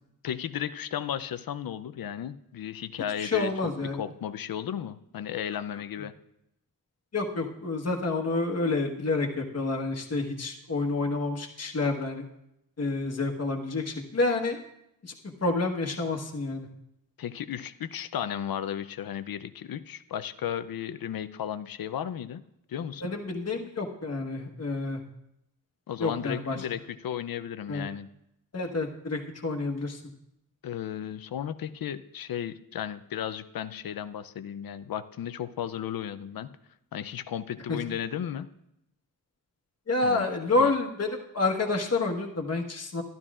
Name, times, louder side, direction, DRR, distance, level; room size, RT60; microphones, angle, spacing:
voice 1, 0.2-6.1 17.2-22.4 22.7-23.1 25.9-28.1 30.6-36.5 36.9-38.5 40.0-40.3 40.6-40.7, left 9 dB, 75° left, 13 dB, 0.6 m, -34 dB
voice 2, 3.2-4.0 7.1-12.2 12.8-14.6 15.0-15.1 15.4-16.7 23.0-25.0 26.0-26.6 27.7-27.8 28.5-30.0 37.7-37.8 39.9-43.0, left 3 dB, 45° left, 1 dB, 1.3 m, -29 dB
12.5 x 12.0 x 2.4 m, 0.81 s
wide cardioid pair, 85°, 35 cm